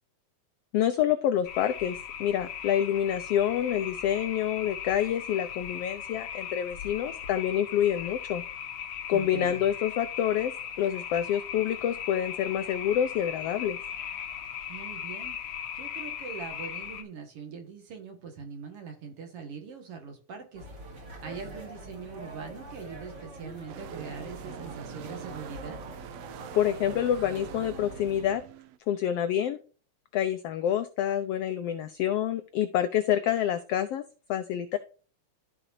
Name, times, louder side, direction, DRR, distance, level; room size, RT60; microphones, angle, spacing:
voice 1, 0.7-8.4 9.1-10.5 10.8-13.8 26.5-28.4 28.9-29.6 30.1-34.0 34.3-34.8, left 10 dB, 80° left, 9 dB, 1.4 m, -27 dB
sound 1, 1.4-17.0, left 8 dB, 60° left, 1.4 m, -38 dB
voice 2, 9.1-9.6 14.7-15.4 15.7-25.8, right 5 dB, 55° right, 4 dB, 2.4 m, -42 dB
sound 2, 20.5-28.2, right 1 dB, 40° right, 2.6 m, -44 dB
sound 3, 23.7-28.8, right 11 dB, 80° right, 1.5 m, -45 dB
13.5 x 4.9 x 2.6 m, 0.39 s
omnidirectional pair, 3.4 m